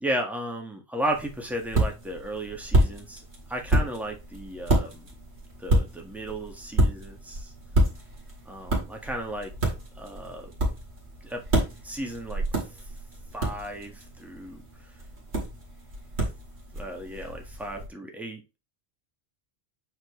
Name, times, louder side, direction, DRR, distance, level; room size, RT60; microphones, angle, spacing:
voice 1, 0.0-3.2 3.5-5.1 5.6-7.5 8.4-9.6 9.9-10.5 11.2-11.4 11.8-12.8 13.3-14.6 16.7-18.4, right 1 dB, ahead, 1.6 m, -34 dB
sound 1, 1.1-17.9, right 1 dB, 70° right, 2.4 m, -29 dB
7.9 x 4.5 x 3.1 m
omnidirectional pair, 1.2 m